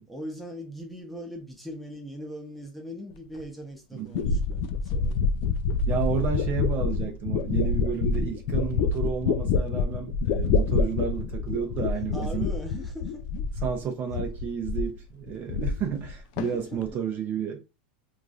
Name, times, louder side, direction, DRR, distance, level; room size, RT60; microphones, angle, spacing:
voice 1, 0.1-5.2 7.9-8.1 12.1-13.3 16.5-16.8, equal, ahead, 0.8 m, -40 dB
sound 1, 3.4-3.5 4.1-13.8 14.1-15.0 15.3-16.1 16.4-16.9, left 4 dB, 55° left, 0.3 m, -27 dB
voice 2, 3.9-4.3 5.9-12.5 13.6-17.6, right 7 dB, 35° right, 0.6 m, -31 dB
3.0 x 2.4 x 2.4 m
supercardioid pair, 140°, 5 cm